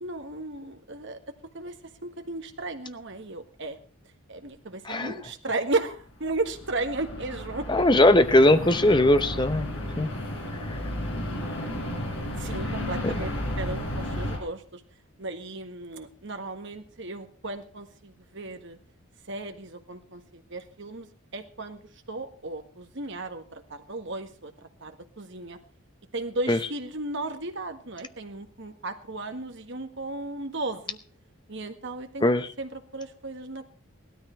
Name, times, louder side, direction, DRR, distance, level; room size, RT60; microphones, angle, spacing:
voice 1, 0.0-1.2 1.5-3.8 4.3-7.7 12.3-14.8 15.2-18.8 19.3-21.1 21.3-21.8 22.1-24.5 24.8-25.6 26.1-31.0 31.5-32.3 32.6-33.7, right 2 dB, 55° right, 6 dB, 1.6 m, -35 dB
sound 1, 6.1-14.4, left 1 dB, 60° left, 4.7 m, -33 dB
voice 2, 7.7-9.7 10.0-10.1 10.7-10.8 13.0-13.1 26.5-26.6 32.2-32.5, left 1 dB, 20° left, 10 dB, 0.8 m, -20 dB
17.5 x 13.0 x 4.5 m, 0.39 s
head